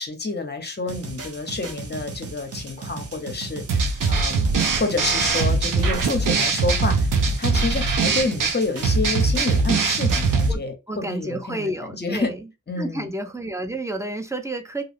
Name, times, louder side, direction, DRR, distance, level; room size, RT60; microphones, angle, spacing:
voice 1, 0.0-12.3 12.7-13.1, left 3 dB, 30° left, 0.8 m, -29 dB
sound 1, 0.9-10.5, right 3 dB, 50° right, 0.7 m, -37 dB
sound 2, 3.7-10.5, right 4 dB, 90° right, 0.6 m, -21 dB
voice 2, 10.5-12.5 12.8-14.8, right 1 dB, 10° right, 0.5 m, -31 dB
2.4 x 2.3 x 3.3 m
wide cardioid pair, 70°, 31 cm